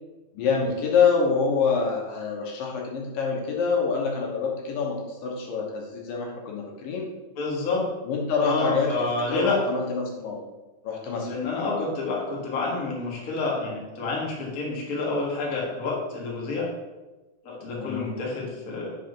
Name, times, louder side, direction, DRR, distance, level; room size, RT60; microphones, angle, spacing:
voice 1, 0.3-7.1 8.0-10.4 10.8-11.3 17.8-18.1, left 5 dB, 70° left, -1 dB, 2.4 m, -26 dB
voice 2, 7.4-7.9 8.4-9.6 11.2-16.7 17.4-18.9, left 3 dB, 90° left, -4 dB, 0.7 m, -28 dB
6.1 x 4.9 x 5.2 m, 1.1 s
omnidirectional pair, 4.6 m